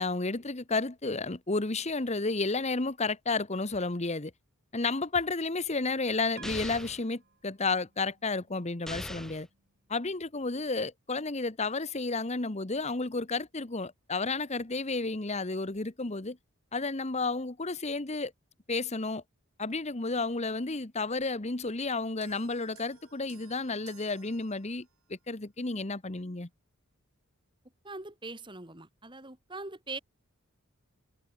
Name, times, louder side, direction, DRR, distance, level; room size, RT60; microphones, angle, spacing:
voice 1, 0.0-4.3 4.7-9.5 9.9-16.4 16.7-18.3 18.7-19.2 19.6-26.5, left 3 dB, 30° left, 1.2 m, -32 dB
sound 1, 6.4-7.0 8.9-9.5, left 1 dB, ahead, 0.3 m, -40 dB
sound 2, 6.4-10.8, right 6 dB, 50° right, 6.0 m, -59 dB
sound 3, 22.2-25.1, right 7 dB, 85° right, 6.2 m, -58 dB
voice 2, 27.8-30.0, right 3 dB, 20° right, 3.0 m, -42 dB
open air
head